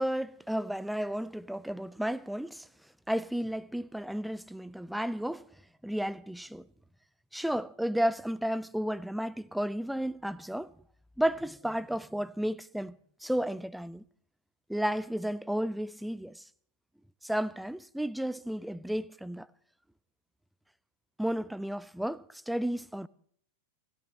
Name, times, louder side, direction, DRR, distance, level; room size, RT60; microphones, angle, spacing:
voice 1, 0.0-2.7 3.1-5.4 5.8-6.7 7.3-10.7 11.2-12.9 13.2-14.0 14.7-16.4 17.2-19.5 21.2-23.1, equal, ahead, 0.5 m, -32 dB
29.5 x 13.5 x 3.1 m
figure-of-eight pair, 90°, 0 cm